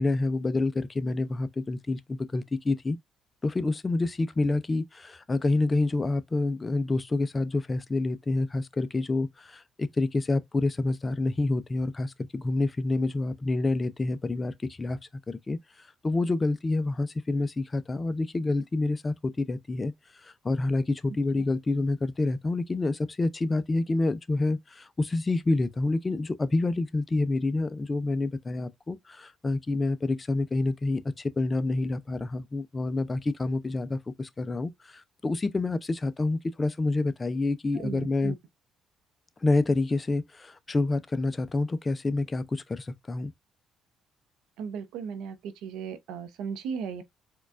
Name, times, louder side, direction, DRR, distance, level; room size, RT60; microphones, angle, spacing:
voice 1, 0.0-3.0 3.4-15.0 15.3-19.9 20.2-38.4 39.4-43.3, left 2 dB, 25° left, 0.5 m, -28 dB
voice 2, 37.8-38.3 44.6-47.0, right 6 dB, 85° right, 0.7 m, -36 dB
4.4 x 2.3 x 2.5 m
cardioid pair, 85°, 0 cm